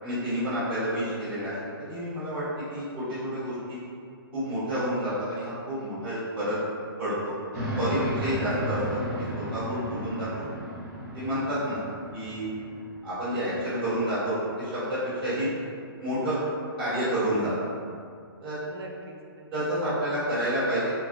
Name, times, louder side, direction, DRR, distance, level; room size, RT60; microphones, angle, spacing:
voice 1, 0.0-2.4 2.7-3.8 4.3-6.6 7.0-7.3 7.8-9.0 9.3-10.5 11.1-11.8 12.1-12.4 13.0-15.5 16.0-16.4 16.8-17.5 18.4-18.5 19.5-20.9, equal, 5° right, -20 dB, 0.9 m, -29 dB
voice 2, 1.0-1.4 8.8-9.4 10.5-10.8 18.6-19.7, right 2 dB, 75° right, 1 dB, 0.5 m, -44 dB
sound 1, 7.5-13.0, equal, 40° right, 0.7 m, -34 dB
3.2 x 2.1 x 2.5 m, 2.3 s
hypercardioid pair, 170°, 13 cm